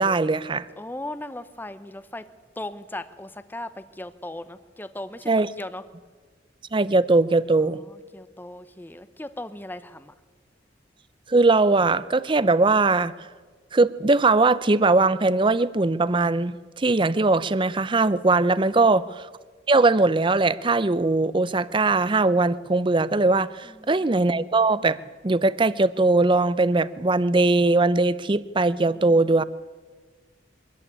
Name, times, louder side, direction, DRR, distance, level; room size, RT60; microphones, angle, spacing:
voice 1, 0.0-0.7 5.3-5.5 6.7-7.8 11.3-13.1 13.7-19.3 19.7-25.0 25.2-29.4, right 3 dB, 25° right, 0.6 m, -20 dB
voice 2, 0.8-2.3 2.6-5.3 5.6-5.9 7.7-10.1 18.7-19.1 23.6-24.2 28.8-29.4, left 1 dB, 10° left, 0.7 m, -38 dB
23.5 x 14.0 x 9.8 m
head